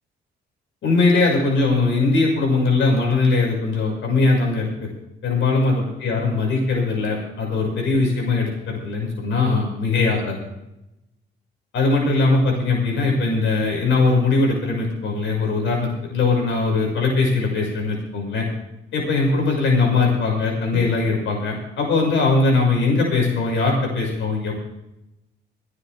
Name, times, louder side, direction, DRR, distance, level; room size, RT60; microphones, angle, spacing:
voice 1, 0.8-4.7 5.2-10.4 11.7-18.5 18.9-24.5, left 3 dB, 70° left, -1 dB, 6.0 m, -20 dB
23.5 x 9.7 x 3.5 m, 0.91 s
cardioid pair, 90°, 20 cm